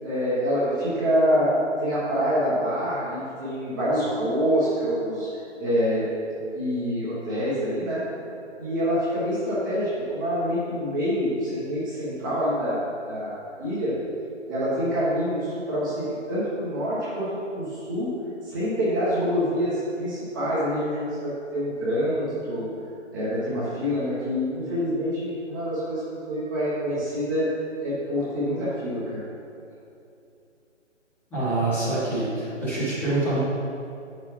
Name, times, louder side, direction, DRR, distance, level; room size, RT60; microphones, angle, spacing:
voice 1, 0.0-5.3 5.6-6.1 6.5-8.1 8.6-12.8 13.0-14.0 14.5-18.1 18.4-22.7 23.1-27.5 27.8-29.2, equal, 15° right, -10 dB, 1.0 m, -26 dB
voice 2, 31.3-33.4, right 2 dB, 5° left, -13 dB, 1.2 m, -25 dB
8.3 x 6.0 x 3.0 m, 2.7 s
figure-of-eight pair, 140°, 37 cm